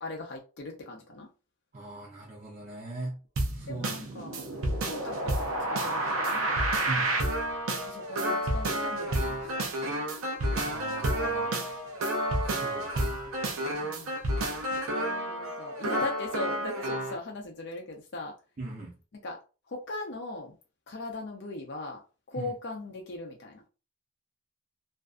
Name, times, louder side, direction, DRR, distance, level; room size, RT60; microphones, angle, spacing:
voice 1, 0.0-1.3 3.7-4.4 4.8-6.6 7.8-9.7 13.8-14.2 14.9-18.4 19.2-20.5 20.9-22.0 22.3-23.6, left 2 dB, 55° left, 0.5 m, -39 dB
voice 2, 1.7-3.2 3.5-3.9 6.9-7.2 10.6-11.6 12.4-13.5 18.6-19.0 22.4-22.5, right 2 dB, 40° right, 0.6 m, -39 dB
sound 1, 3.4-17.2, right 1 dB, 85° right, 0.6 m, -30 dB
2.5 x 2.3 x 2.4 m
head